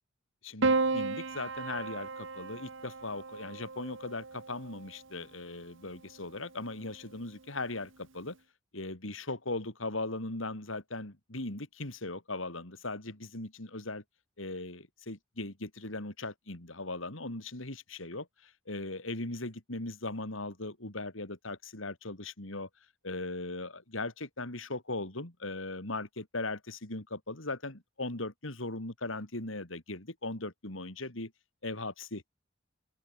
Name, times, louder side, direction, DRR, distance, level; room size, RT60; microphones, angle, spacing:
voice 1, 0.4-8.4 8.7-14.0 14.4-22.7 23.0-31.3 31.6-32.3, left 2 dB, 70° left, 3.7 m, -39 dB
Piano, 0.6-5.1 6.3-7.0, right 3 dB, 65° right, 1.4 m, -34 dB
open air
head